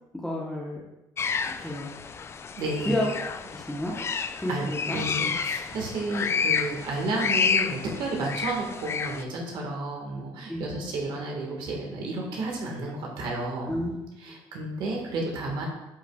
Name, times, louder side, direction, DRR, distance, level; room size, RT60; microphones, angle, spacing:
voice 1, 0.2-0.8 1.5-1.9 2.9-3.1 3.5-3.9 4.4-5.0 10.5-10.6 13.7-14.0 14.2-14.4, left 1 dB, 5° left, -4 dB, 1.0 m, -30 dB
sound 1, 1.2-9.2, left 6 dB, 30° left, 0.4 m, -30 dB
voice 2, 2.6-2.9 4.1-4.2 4.5-4.6 4.9-13.8 14.2-15.7, right 2 dB, 65° right, 0 dB, 1.6 m, -32 dB
11.0 x 5.6 x 2.4 m, 0.93 s
cardioid pair, 110°, 8 cm